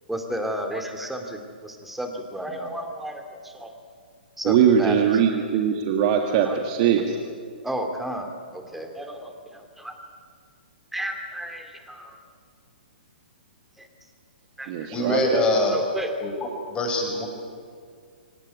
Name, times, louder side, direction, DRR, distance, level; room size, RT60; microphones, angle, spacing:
voice 1, 0.1-3.7 4.4-5.0 6.4-6.6 7.6-10.0 10.9-12.2 13.8-13.9 14.6-14.9 15.7-16.1, right 1 dB, 5° right, 5 dB, 2.7 m, -32 dB
voice 2, 4.4-7.2 14.7-15.4, right 8 dB, 45° right, 4 dB, 2.0 m, -21 dB
voice 3, 14.9-15.8 16.2-17.3, left 1 dB, 15° left, 2 dB, 5.6 m, -24 dB
25.0 x 18.0 x 9.7 m, 2.1 s
hypercardioid pair, 130°, 6 cm